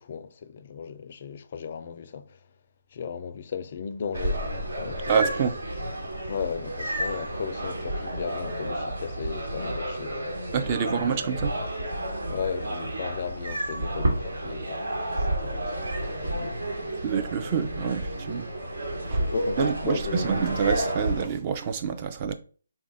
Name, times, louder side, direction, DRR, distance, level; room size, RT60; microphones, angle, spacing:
voice 1, 0.0-2.4 2.9-4.5 4.8-5.1 6.3-11.0 12.3-16.9 17.4-17.6 19.2-20.3, left 6 dB, 45° left, 0.3 m, -36 dB
sound 1, 4.1-21.3, right 1 dB, 80° right, 1.3 m, -31 dB
voice 2, 5.1-5.6 10.5-11.5 17.0-18.5 19.1-19.2 19.6-22.3, right 7 dB, 30° right, 0.4 m, -27 dB
3.4 x 2.4 x 3.9 m
figure-of-eight pair, 150°, 0 cm